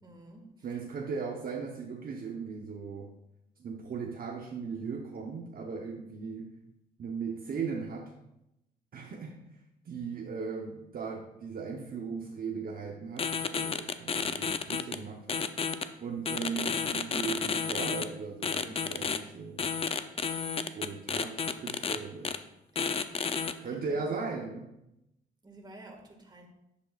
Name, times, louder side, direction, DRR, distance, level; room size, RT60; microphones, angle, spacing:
voice 1, 0.0-0.4 0.7-0.8 20.2-20.6 22.7-23.4 23.9-24.0 25.4-26.5, right 1 dB, 20° right, 2 dB, 1.9 m, -52 dB
voice 2, 0.6-3.1 3.6-6.6 7.0-8.1 8.9-15.5 16.0-19.7 20.8-22.4 23.6-24.7, right 5 dB, 50° right, 1 dB, 0.9 m, -38 dB
sound 1, 13.2-15.0 15.3-15.8 16.2-18.0 18.4-19.2 19.6-22.0 22.2-22.4 22.7-23.5, left 5 dB, 30° left, 0.5 m, -31 dB
10.5 x 7.5 x 2.4 m, 0.87 s
cardioid pair, 90°, 20 cm